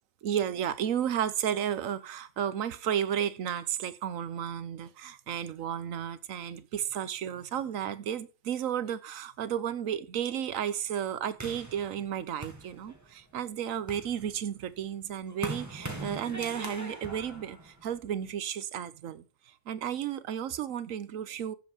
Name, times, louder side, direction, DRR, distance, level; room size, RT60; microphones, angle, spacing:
voice 1, 0.2-19.2 19.7-21.5, right 9 dB, 80° right, 1.2 m, -33 dB
sound 1, 11.4-13.2 13.7-18.3, right 1 dB, 10° right, 1.8 m, -41 dB
8.1 x 7.1 x 5.0 m
omnidirectional pair, 1.4 m